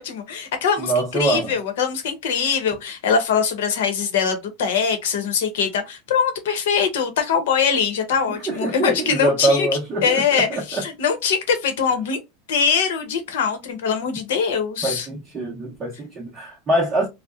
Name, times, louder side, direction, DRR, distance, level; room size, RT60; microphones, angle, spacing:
voice 1, 0.0-9.7 10.0-12.2 12.5-15.1, left 6 dB, 90° left, 0.8 m, -22 dB
voice 2, 0.8-1.5 8.3-10.8 14.8-17.1, right 2 dB, 15° right, 0.7 m, -24 dB
2.8 x 2.0 x 2.3 m
supercardioid pair, 160°, 0 cm